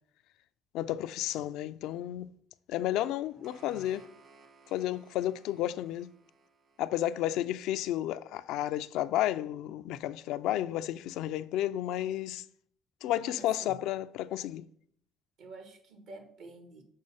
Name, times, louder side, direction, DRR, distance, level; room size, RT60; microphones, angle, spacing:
voice 1, 0.7-2.3 2.7-4.1 4.7-6.1 6.8-12.4 13.0-14.7, left 13 dB, 80° left, 0.3 m, -32 dB
sound 1, 3.0-8.1, right 4 dB, 45° right, 1.3 m, -60 dB
voice 2, 3.3-3.9 7.1-7.3 13.0-13.8 15.4-16.8, right 2 dB, 75° right, 1.5 m, -50 dB
6.4 x 4.4 x 5.6 m
supercardioid pair, 85°, 0 cm